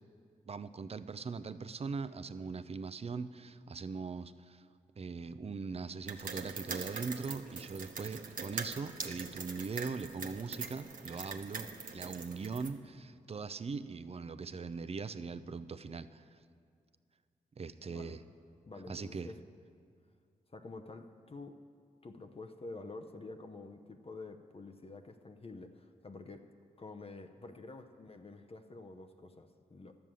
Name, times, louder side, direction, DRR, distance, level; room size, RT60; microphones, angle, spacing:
voice 1, 0.5-4.7 5.0-16.2 17.6-18.2 18.9-19.3, right 4 dB, 40° right, 13 dB, 0.5 m, -41 dB
sound 1, 6.1-12.7, right 5 dB, 60° right, 1.0 m, -43 dB
voice 2, 18.7-19.4 20.5-21.6 22.0-26.5 26.8-30.0, left 3 dB, 40° left, 6 dB, 0.7 m, -48 dB
11.0 x 7.0 x 7.6 m, 2.2 s
supercardioid pair, 45°, 15 cm